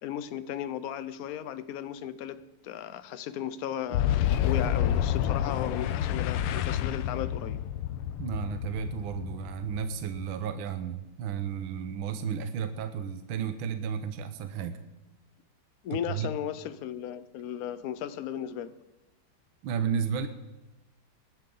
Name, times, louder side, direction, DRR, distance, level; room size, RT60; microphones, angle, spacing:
voice 1, 0.0-7.6 15.8-18.7, left 10 dB, 65° left, 0.9 m, -36 dB
Boom, 3.9-10.5, left 10 dB, 90° left, 1.6 m, -29 dB
voice 2, 8.2-14.8 15.9-16.3 19.6-20.3, right 7 dB, 70° right, 1.6 m, -33 dB
19.0 x 12.0 x 3.9 m
omnidirectional pair, 2.4 m